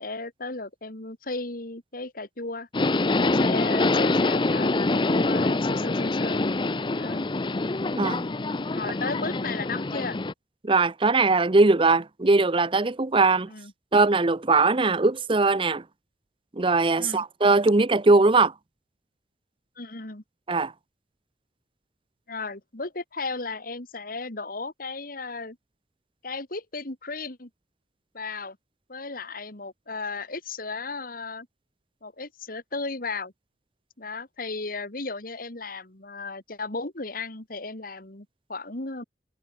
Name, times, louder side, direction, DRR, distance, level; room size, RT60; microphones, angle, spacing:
voice 1, 0.0-2.7 3.2-6.5 7.0-7.3 8.7-10.2 13.5-13.7 17.0-17.2 19.8-20.2 22.3-25.6 26.2-27.5 28.1-28.6 28.9-31.5 32.0-33.3 34.0-39.0, left 3 dB, 55° left, 2.6 m, -35 dB
Subway metro underground, 2.7-10.3, left 2 dB, 30° left, 0.6 m, -25 dB
voice 2, 10.6-13.5 13.9-15.8 16.5-18.5 20.5-20.7, right 3 dB, 30° right, 0.8 m, -20 dB
head